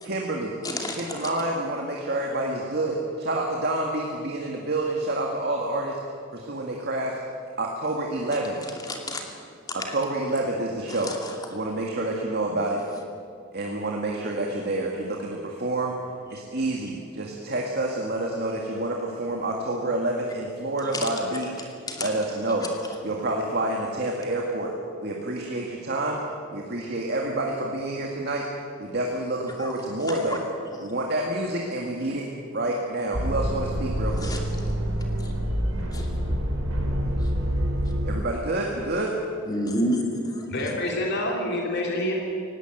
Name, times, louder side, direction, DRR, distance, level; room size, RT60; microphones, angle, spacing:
voice 1, 0.0-0.5 1.0-6.0 6.3-7.1 7.6-8.6 9.7-11.1 11.5-12.8 13.5-15.9 16.3-21.6 22.0-22.7 23.0-24.7 25.0-26.2 26.5-28.5 28.8-30.4 30.8-32.3 32.5-34.3 38.0-39.1, right 2 dB, 50° right, -1 dB, 2.1 m, -28 dB
voice 2, 0.6-1.3 8.9-9.2 9.7-9.9 10.9-11.4 20.9-21.1 21.9-22.1 22.6-22.7 29.6-29.7 30.3-30.4 30.8-30.9 34.2-34.4 35.2-35.3 35.9-36.1 39.5-40.7, left 1 dB, 20° left, 2 dB, 2.6 m, -30 dB
sound 1, 33.1-38.2, equal, 80° right, 4.5 m, -26 dB
voice 3, 40.5-42.1, left 1 dB, 55° left, -1 dB, 3.3 m, -27 dB
19.5 x 17.5 x 8.0 m, 2.4 s
head